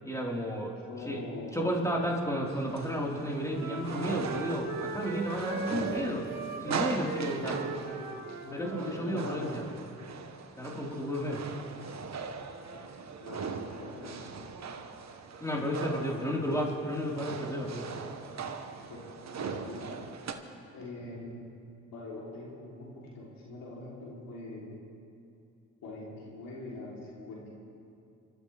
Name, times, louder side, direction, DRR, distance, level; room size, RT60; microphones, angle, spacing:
voice 1, 0.0-0.7 1.1-1.2 1.5-6.3 6.6-7.6 8.5-9.6 10.6-11.4 15.4-17.9, equal, 10° left, -3 dB, 4.5 m, -32 dB
voice 2, 0.9-1.6 7.3-7.9 8.4-9.5 13.2-14.3 16.1-16.6 18.9-19.1 19.4-20.0 20.7-21.5 21.9-24.8 25.8-27.5, left 2 dB, 80° left, -5 dB, 3.6 m, -43 dB
sound 1, 2.5-20.3, right 5 dB, 50° right, 1.3 m, -40 dB
Wind instrument woodwind instrument, 3.1-9.5, right 4 dB, 85° right, 2.0 m, -39 dB
27.0 x 13.5 x 3.5 m, 2.5 s
supercardioid pair, 55°, 34 cm